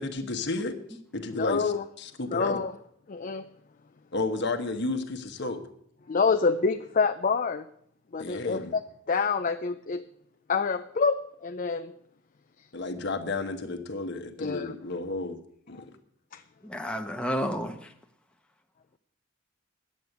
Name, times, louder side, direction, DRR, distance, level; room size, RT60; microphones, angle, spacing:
voice 1, 0.0-2.6 4.1-5.6 8.2-8.7 12.7-15.4 15.7-15.8, left 2 dB, 60° left, 1.2 m, -32 dB
voice 2, 1.3-1.8 2.3-2.7 3.1-3.4 6.1-7.6 8.1-8.8 9.1-10.0 10.5-11.2 11.4-11.8 14.4-14.7, left 5 dB, 45° left, 0.5 m, -26 dB
voice 3, 16.6-17.9, equal, 5° left, 1.0 m, -31 dB
10.5 x 8.5 x 8.0 m
head